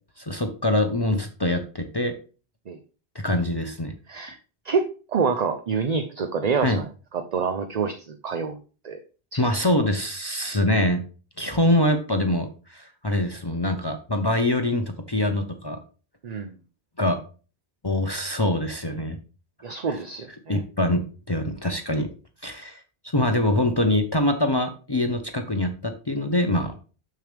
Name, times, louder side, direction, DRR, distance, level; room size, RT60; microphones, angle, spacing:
voice 1, 0.2-2.2 3.1-3.9 6.6-6.8 9.4-11.0 11.4-15.8 17.0-17.2 17.8-19.2 19.9-20.0 20.5-22.1 22.4-22.8 23.1-26.7, left 1 dB, 25° left, 7 dB, 0.7 m, -24 dB
voice 2, 4.6-6.9 7.1-8.6 8.8-9.0 9.3-9.5 16.2-16.5 19.6-20.6, right 5 dB, 45° right, 8 dB, 0.7 m, -27 dB
6.7 x 6.3 x 3.4 m, 0.35 s
omnidirectional pair, 1.1 m